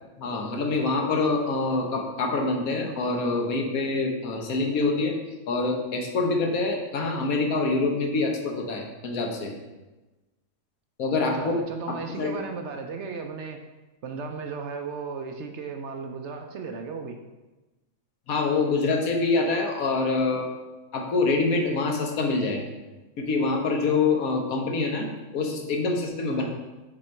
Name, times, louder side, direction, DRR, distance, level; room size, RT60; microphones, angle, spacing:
voice 1, 0.2-5.1 5.5-9.5 11.0-11.5 11.9-12.3 18.3-20.5 20.9-22.7 23.2-25.1 25.3-26.5, left 3 dB, 80° left, 1 dB, 1.4 m, -25 dB
voice 2, 11.2-13.6 14.0-17.2 26.3-26.5, right 5 dB, 65° right, 5 dB, 0.8 m, -35 dB
6.4 x 3.9 x 4.4 m, 1.1 s
omnidirectional pair, 1.5 m